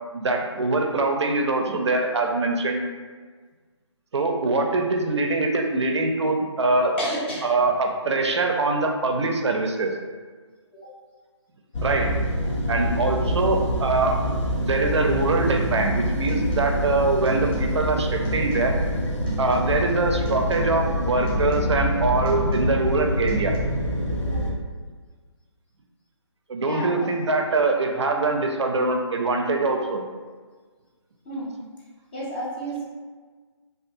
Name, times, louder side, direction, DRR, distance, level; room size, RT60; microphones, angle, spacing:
voice 1, 0.1-2.8 4.1-7.0 7.4-9.9 11.8-12.1 12.7-14.2 14.5-18.7 19.4-23.5 26.5-30.0, right 3 dB, 65° right, 2 dB, 0.4 m, -23 dB
voice 2, 7.0-7.4 13.2-13.3 26.6-27.3 31.3-31.6 32.1-32.8, right 1 dB, 20° left, -6 dB, 0.5 m, -30 dB
sound 1, 11.7-24.5, equal, 75° left, 0.6 m, -26 dB
sound 2, 15.6-15.9 16.2-16.9 17.2-17.9 18.2-18.9 19.3-20.0 20.2-20.9 21.3-21.9 22.2-22.9 23.3-23.5, right 1 dB, 20° right, 0.6 m, -38 dB
2.5 x 2.3 x 2.6 m, 1.5 s
figure-of-eight pair, 145°, 15 cm